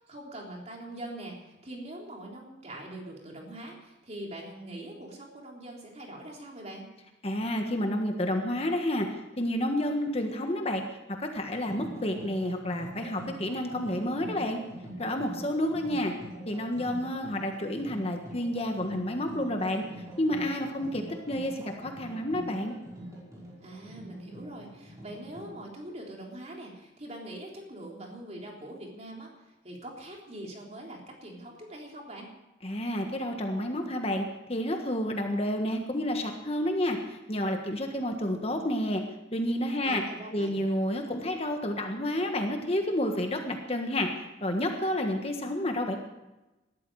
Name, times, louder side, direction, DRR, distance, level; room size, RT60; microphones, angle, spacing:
voice 1, 0.1-1.3 1.6-6.8 23.6-29.3 29.6-32.3 39.8-40.7, right 1 dB, 35° right, -1 dB, 3.6 m, -43 dB
voice 2, 7.2-9.1 9.4-10.8 11.2-14.6 15.0-16.1 16.5-19.8 20.2-22.8 32.6-39.0 39.3-40.0 40.3-44.1 44.4-46.0, left 1 dB, 30° left, 4 dB, 1.5 m, -30 dB
sound 1, 11.5-25.6, equal, 15° right, 5.3 m, -45 dB
19.0 x 13.0 x 4.9 m, 1.0 s
head